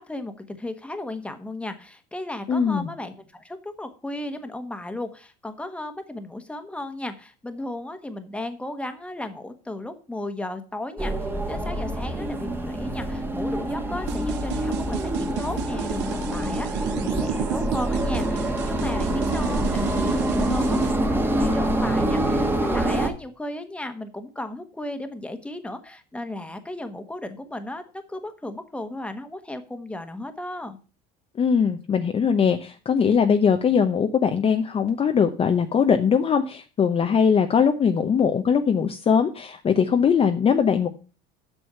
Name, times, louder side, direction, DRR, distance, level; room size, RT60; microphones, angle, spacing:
voice 1, 0.0-11.1 11.5-30.8, left 1 dB, 5° left, 8 dB, 1.3 m, -35 dB
voice 2, 2.5-2.9 31.4-40.9, left 6 dB, 30° left, 6 dB, 0.8 m, -21 dB
sound 1, 11.0-23.1, right 1 dB, 10° right, 1.4 m, -25 dB
sound 2, 14.1-20.9, right 16 dB, 60° right, 0.5 m, -33 dB
8.0 x 6.2 x 6.8 m, 0.36 s
supercardioid pair, 110°, 21 cm